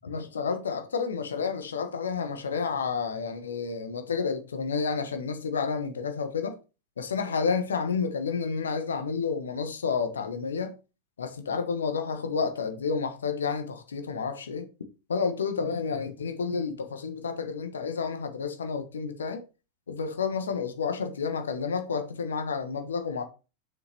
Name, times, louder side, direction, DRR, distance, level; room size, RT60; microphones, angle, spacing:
voice 1, 0.0-6.6 7.0-10.8 11.2-14.7 15.1-19.4 19.9-23.2, left 5 dB, 70° left, 1.2 m, -30 dB
6.5 x 5.4 x 4.4 m
figure-of-eight pair, 90°, 0 cm